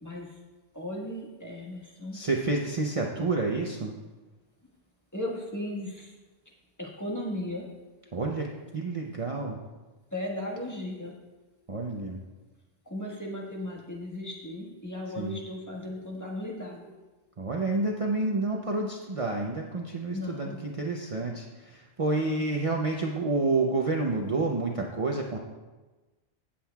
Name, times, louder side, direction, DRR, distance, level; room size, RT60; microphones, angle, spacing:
voice 1, 0.0-0.4 0.7-2.2 5.1-6.1 6.8-7.7 10.1-11.1 12.8-16.9 20.1-20.6 22.2-22.5, left 1 dB, 15° left, -3 dB, 1.5 m, -36 dB
voice 2, 2.1-3.9 8.1-8.5 8.7-9.6 11.7-12.2 15.2-15.4 17.4-25.4, right 3 dB, 35° right, 0 dB, 0.7 m, -29 dB
17.0 x 7.6 x 2.3 m, 1.2 s
omnidirectional pair, 1.1 m